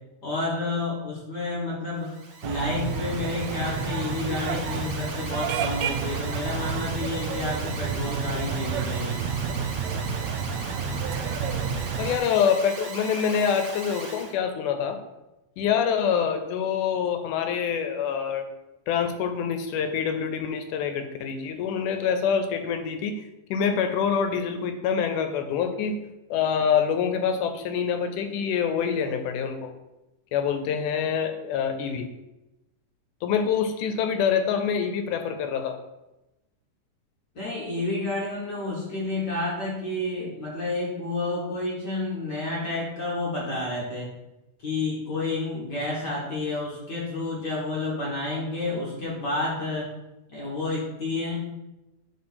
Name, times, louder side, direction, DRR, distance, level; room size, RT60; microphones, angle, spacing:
voice 1, 0.2-2.1 2.4-9.2 37.3-44.1 44.6-49.9 50.3-51.4, left 2 dB, 45° left, -5 dB, 1.4 m, -30 dB
Alarm, 2.0-14.3, right 3 dB, 65° right, 1.5 m, -39 dB
sound 1, 2.4-12.2, right 6 dB, 85° right, 1.5 m, -30 dB
voice 2, 12.0-15.0 15.6-18.4 18.9-23.2 23.5-26.0 26.3-29.7 30.3-32.1 33.2-35.8, left 7 dB, 80° left, 7 dB, 2.0 m, -26 dB
4.9 x 4.3 x 5.5 m, 0.98 s
omnidirectional pair, 3.7 m